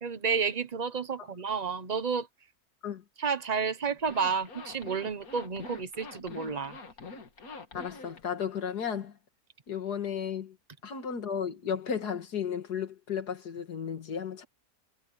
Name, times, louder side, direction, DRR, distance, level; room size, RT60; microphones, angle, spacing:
voice 1, 0.0-2.3 3.2-6.8, right 5 dB, 30° right, 1.1 m, -31 dB
Zipper (clothing), 4.0-8.2, left 3 dB, 65° left, 2.5 m, -45 dB
voice 2, 7.7-9.1 9.7-10.5 10.8-14.4, left 7 dB, 85° left, 2.4 m, -34 dB
omnidirectional pair, 1.7 m